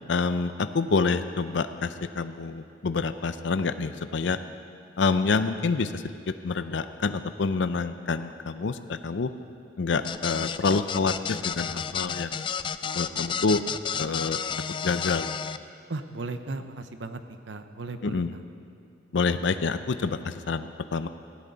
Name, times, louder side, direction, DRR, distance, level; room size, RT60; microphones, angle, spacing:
voice 1, 0.1-4.4 5.0-9.3 9.8-12.3 12.9-13.6 14.0-14.4 14.8-15.3 18.0-18.3 19.1-21.1, left 4 dB, 80° left, 11 dB, 0.5 m, -27 dB
sound 1, 10.0-15.6, left 7 dB, 25° left, 0.3 m, -31 dB
voice 2, 15.9-17.2 17.5-18.4, right 3 dB, 80° right, 9 dB, 0.8 m, -36 dB
17.5 x 15.5 x 4.0 m, 2.4 s
head